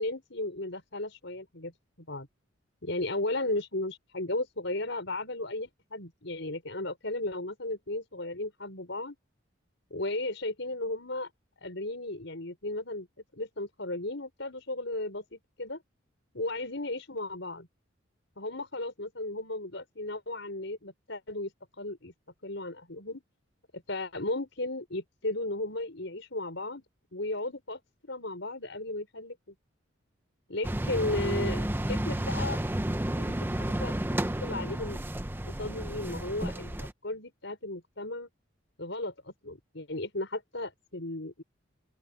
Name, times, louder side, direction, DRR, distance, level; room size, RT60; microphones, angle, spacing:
voice 1, 0.0-1.7 2.1-2.3 2.8-9.2 9.9-11.3 11.6-13.1 13.3-15.8 16.3-17.7 18.4-21.5 21.8-22.1 22.4-23.2 23.7-26.8 27.1-27.8 28.1-29.5 30.5-32.6 33.2-33.9 34.4-35.0 35.5-38.3 38.8-41.4, left 2 dB, 65° left, 5.4 m, -35 dB
sound 1, 30.6-36.9, right 1 dB, 10° right, 0.6 m, -31 dB
open air
head